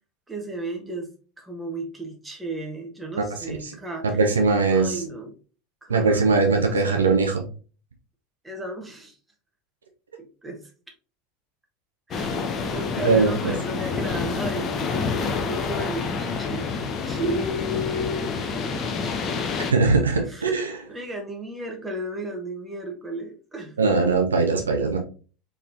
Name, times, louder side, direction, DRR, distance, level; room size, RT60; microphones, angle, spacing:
voice 1, 0.3-1.1 1.4-4.2 4.7-5.3 5.8-6.3 6.7-7.0 8.4-9.2 10.2-10.6 12.1-16.7 17.1-19.0 20.2-20.6 20.9-23.9, right 1 dB, 10° right, 2 dB, 1.2 m, -34 dB
voice 2, 3.2-3.7 4.1-5.0 5.9-7.4 13.0-13.5 19.7-20.8 23.8-25.0, right 4 dB, 75° right, 3 dB, 0.6 m, -21 dB
sound 1, 12.1-19.7, left 5 dB, 35° left, 0.7 m, -28 dB
4.1 x 3.5 x 2.6 m, 0.36 s
figure-of-eight pair, 75°, 0 cm